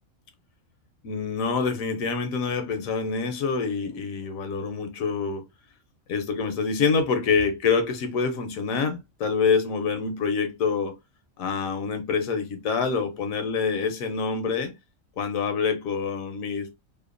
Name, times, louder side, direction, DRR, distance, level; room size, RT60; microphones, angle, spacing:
voice 1, 1.0-5.4 6.1-11.0 11.4-14.7 15.2-16.7, left 5 dB, 80° left, 1.0 m, -26 dB
2.8 x 2.1 x 2.3 m
omnidirectional pair, 1.4 m